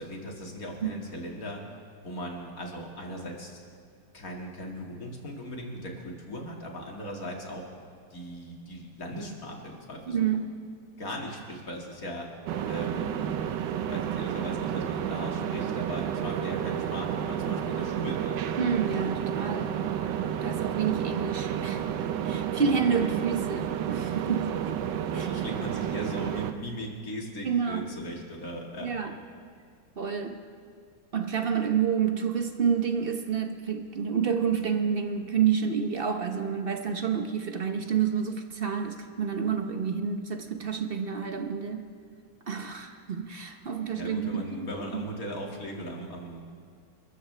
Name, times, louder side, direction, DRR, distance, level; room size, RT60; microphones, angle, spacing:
voice 1, 0.0-1.6 2.0-3.6 4.1-7.7 8.1-10.4 11.0-12.3 12.7-13.3 13.9-18.6 25.1-29.0 43.9-46.5, equal, 50° left, 0 dB, 2.6 m, -38 dB
voice 2, 10.1-10.5 18.6-19.8 20.4-21.8 22.2-24.8 25.1-25.3 27.4-27.8 28.8-29.1 30.0-30.4 31.1-41.9 42.5-45.0, right 7 dB, 45° right, 5 dB, 0.8 m, -29 dB
sound 1, 12.5-26.5, right 9 dB, 80° right, 1.4 m, -31 dB
29.5 x 14.0 x 3.3 m, 2.2 s
omnidirectional pair, 1.9 m